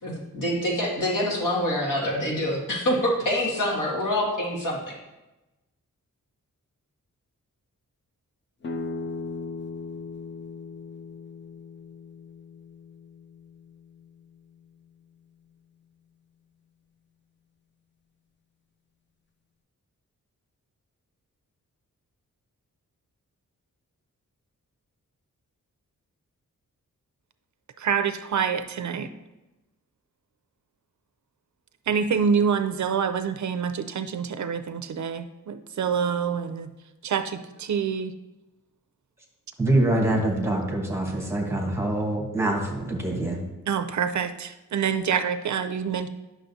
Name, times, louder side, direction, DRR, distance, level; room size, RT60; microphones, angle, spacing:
voice 1, 0.0-5.0, left 1 dB, 70° left, -3 dB, 2.0 m, -26 dB
sound 1, 8.6-14.2, left 4 dB, 35° left, 0.5 m, -38 dB
voice 2, 27.8-29.1 31.9-36.7 37.0-38.1 43.7-46.1, right 6 dB, 60° right, 11 dB, 0.4 m, -26 dB
voice 3, 39.6-43.4, right 1 dB, 10° right, 0 dB, 1.1 m, -25 dB
9.9 x 6.3 x 2.7 m, 1.0 s
wide cardioid pair, 170°, 33 cm